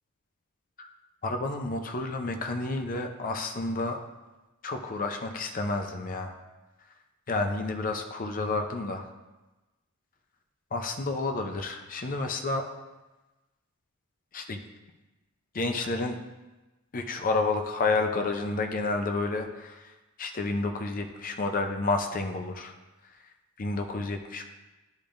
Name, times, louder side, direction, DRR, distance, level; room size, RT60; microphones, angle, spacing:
voice 1, 1.2-4.0 4.6-6.4 7.3-9.1 10.7-12.6 14.3-14.6 15.5-16.2 16.9-22.7 23.6-24.4, left 3 dB, 40° left, 5 dB, 0.6 m, -30 dB
12.0 x 5.2 x 2.5 m, 1.1 s
head